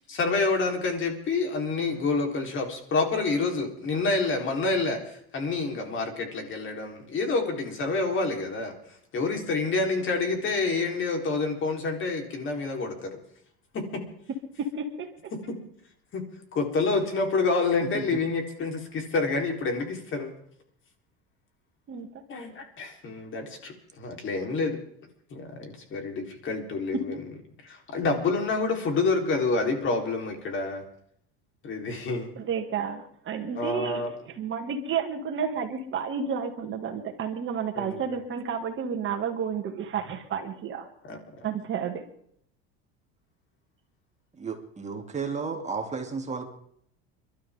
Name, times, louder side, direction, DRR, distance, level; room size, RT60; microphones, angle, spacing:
voice 1, 0.1-8.7 9.1-13.1 13.7-14.0 15.5-15.6 16.1-16.2 16.5-20.3 22.3-24.8 25.3-27.1 27.7-30.8 31.6-32.3 33.6-34.1 37.8-38.0 41.0-41.2, left 3 dB, 40° left, 3 dB, 4.0 m, -28 dB
voice 2, 14.6-15.3 21.9-22.1 26.9-27.2 32.4-40.9 41.4-42.0, right 6 dB, 40° right, 4 dB, 2.4 m, -31 dB
voice 3, 44.4-46.5, right 5 dB, 20° right, 3 dB, 2.8 m, -33 dB
30.0 x 12.5 x 3.7 m, 0.67 s
supercardioid pair, 115°, 31 cm